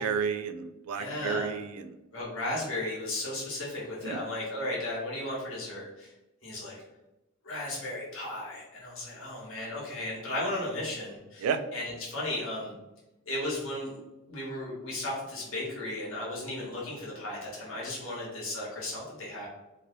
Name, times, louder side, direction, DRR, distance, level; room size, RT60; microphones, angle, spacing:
voice 1, 0.0-1.9 4.0-4.2 11.4-11.6, right 6 dB, 90° right, 9 dB, 0.3 m, -31 dB
voice 2, 0.9-1.5 2.1-6.1 6.4-6.8 7.4-12.8 13.3-14.0 14.3-19.5, left 1 dB, 65° left, -5 dB, 1.2 m, -35 dB
3.0 x 2.7 x 2.7 m, 1.0 s
head